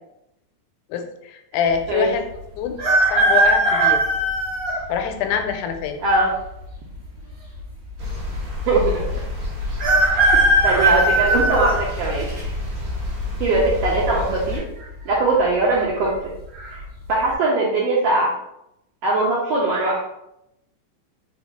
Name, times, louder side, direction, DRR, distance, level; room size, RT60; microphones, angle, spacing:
voice 1, 0.9-2.2 2.6-2.8 3.1-4.0 4.9-6.0, left 7 dB, 90° left, 6 dB, 2.0 m, -24 dB
sound 1, 2.8-4.8 5.5-5.6 6.7-7.3 7.6-7.7 7.9-8.0 9.8-12.4 12.9-13.3 14.5-14.8 15.1-15.2 15.7-16.1 16.5-16.7, right 2 dB, 45° right, 1.6 m, -19 dB
voice 2, 6.0-6.3 8.7-9.0 10.6-11.7 12.0-12.2 13.4-14.6 15.0-16.1 16.7-16.8 17.1-18.3 19.0-20.0, right 2 dB, 80° right, -4 dB, 1.4 m, -20 dB
sound 2, 8.0-14.6, left 3 dB, 60° right, 1.3 m, -28 dB
4.8 x 2.3 x 3.4 m, 0.84 s
omnidirectional pair, 3.4 m